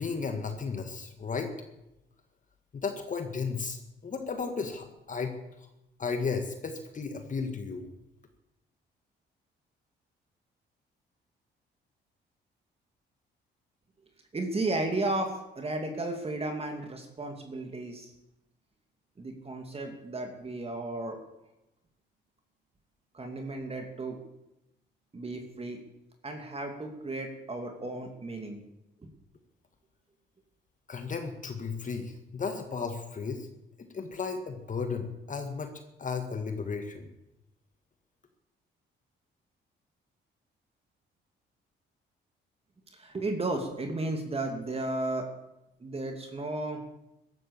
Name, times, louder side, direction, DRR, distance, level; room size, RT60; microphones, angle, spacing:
voice 1, 0.0-1.5 2.7-5.3 6.0-7.9 30.9-33.5 33.8-35.7 36.0-37.1, left 5 dB, 40° left, 6 dB, 1.9 m, -34 dB
voice 2, 14.3-18.1 19.2-21.2 23.1-24.2 25.1-25.8 26.2-28.6 29.0-29.1 43.0-45.3 45.8-46.8, right 2 dB, 30° right, 4 dB, 2.6 m, -34 dB
15.0 x 12.5 x 7.2 m, 0.91 s
cardioid pair, 90°, 20 cm